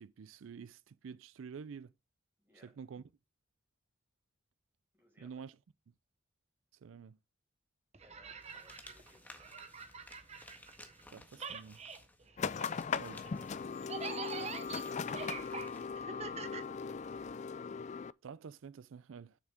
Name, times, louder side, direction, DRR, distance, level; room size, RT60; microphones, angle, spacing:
voice 1, 0.0-1.9 2.6-3.0 5.2-5.6 6.8-7.2 11.1-11.8 13.0-13.2 18.2-19.4, right 6 dB, 80° right, 0.4 m, -48 dB
voice 2, 2.4-2.8 5.0-5.5 8.0-9.2 13.1-13.5, equal, 10° right, 5.7 m, -65 dB
sound 1, 7.9-11.1 11.3-17.3, right 5 dB, 35° right, 1.0 m, -46 dB
sound 2, 8.4-15.9, left 1 dB, 10° left, 1.6 m, -58 dB
sound 3, 12.4-18.1, left 5 dB, 35° left, 0.4 m, -39 dB
8.8 x 7.0 x 3.5 m
head